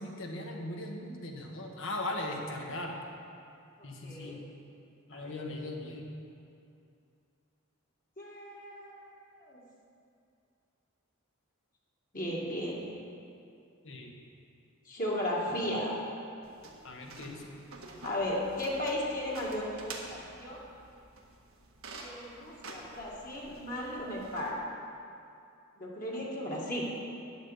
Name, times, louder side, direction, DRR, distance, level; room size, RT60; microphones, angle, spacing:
voice 1, 0.0-3.0 3.8-4.4 5.1-6.0 13.8-14.1 16.8-17.5, left 1 dB, 65° left, 1 dB, 1.4 m, -39 dB
voice 2, 3.8-4.4 5.1-5.5 8.2-9.6 12.1-12.8 14.9-16.0 18.0-20.6 22.0-24.6 25.8-26.8, left 1 dB, 40° left, -5 dB, 2.1 m, -35 dB
sound 1, 16.4-24.5, right 3 dB, 80° right, 1.4 m, -49 dB
9.5 x 7.4 x 7.2 m, 2.5 s
head